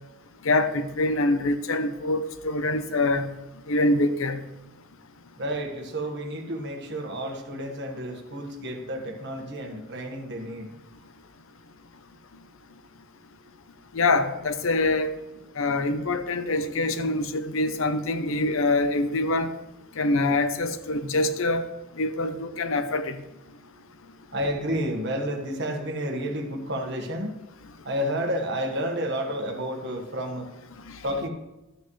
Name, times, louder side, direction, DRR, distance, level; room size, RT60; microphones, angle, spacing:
voice 1, 0.4-3.3 3.7-4.4 13.9-15.1 15.6-19.5 20.0-21.6 22.0-23.2 30.9-31.0, left 2 dB, 65° left, 11 dB, 0.7 m, -25 dB
voice 2, 5.4-10.7 11.0-11.1 15.5-15.6 24.3-27.4 27.8-30.5 31.0-31.3, equal, 50° right, 3 dB, 1.4 m, -31 dB
12.5 x 8.5 x 3.2 m, 1.0 s
head